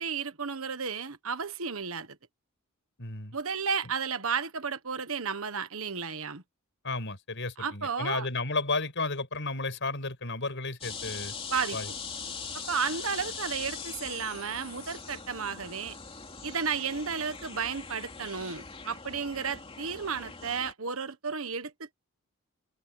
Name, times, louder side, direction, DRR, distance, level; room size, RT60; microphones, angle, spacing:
voice 1, 0.0-2.1 3.3-6.4 7.6-8.3 11.5-11.8 12.7-16.0 16.4-21.9, right 6 dB, 70° right, 1.4 m, -33 dB
voice 2, 3.0-3.4 6.8-11.3 11.7-11.9, left 3 dB, 55° left, 5.9 m, -33 dB
sound 1, 10.8-20.7, left 5 dB, 25° left, 3.2 m, -41 dB
head